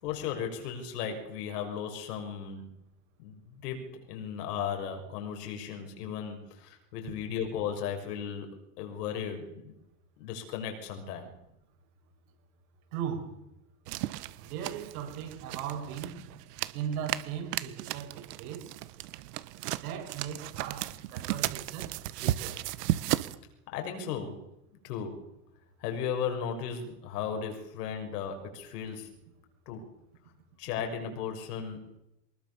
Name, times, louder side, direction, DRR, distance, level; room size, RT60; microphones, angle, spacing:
voice 1, 0.0-2.7 3.2-8.5 8.8-9.7 10.2-11.3 23.7-24.4 24.8-25.1 25.8-29.1 29.7-29.8 30.6-31.9, left 7 dB, 90° left, 6.3 m, -36 dB
voice 2, 12.9-13.4 14.4-16.2 16.7-18.8 19.8-22.6, right 8 dB, 70° right, 6.3 m, -38 dB
sound 1, 13.9-23.4, right 15 dB, 90° right, 1.4 m, -35 dB
24.0 x 21.0 x 7.1 m
supercardioid pair, 175°, 46 cm